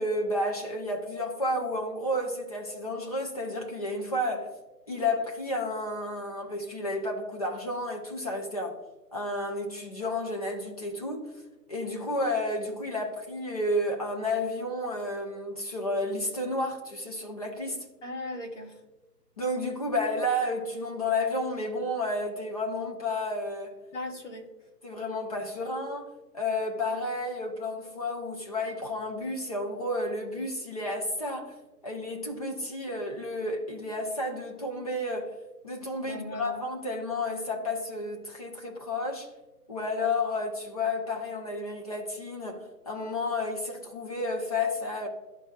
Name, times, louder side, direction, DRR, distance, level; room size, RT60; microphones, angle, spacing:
voice 1, 0.0-4.5 4.9-8.8 9.1-11.2 11.7-17.8 19.4-23.7 24.8-26.1 26.3-31.5 31.8-35.3 35.6-39.3 39.7-45.1, left 1 dB, 25° left, 0.8 m, -31 dB
voice 2, 18.0-18.8 23.9-24.5 36.0-36.7, left 2 dB, 45° left, 1.6 m, -38 dB
12.0 x 4.3 x 2.3 m
figure-of-eight pair, 145°, 49 cm